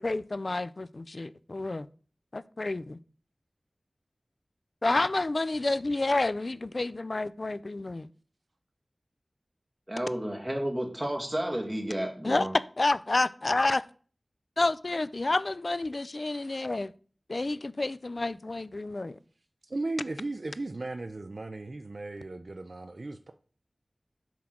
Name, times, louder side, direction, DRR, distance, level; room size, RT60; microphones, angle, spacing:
voice 1, 0.0-1.9 2.3-3.0 4.8-8.1 12.2-12.5 12.8-13.8 14.6-16.9 17.3-19.2, left 2 dB, 60° left, 0.4 m, -29 dB
voice 2, 9.9-12.5, right 1 dB, 20° right, 2.1 m, -31 dB
voice 3, 19.7-23.3, right 2 dB, 70° right, 0.4 m, -36 dB
7.3 x 3.8 x 5.9 m
wide cardioid pair, 55°, 0 cm